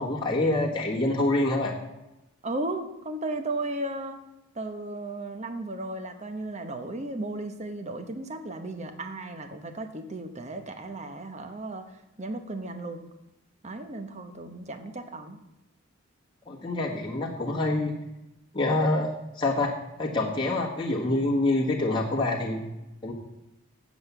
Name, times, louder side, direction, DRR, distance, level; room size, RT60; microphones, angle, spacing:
voice 1, 0.0-1.7 16.5-17.9 18.5-19.1 19.3-19.7 20.0-22.6 23.0-23.1, left 2 dB, 20° left, -3 dB, 1.4 m, -26 dB
voice 2, 2.4-4.2 4.5-11.9 12.2-13.0 13.6-15.4, right 2 dB, 30° right, 7 dB, 0.9 m, -35 dB
7.9 x 7.1 x 8.0 m, 0.94 s
head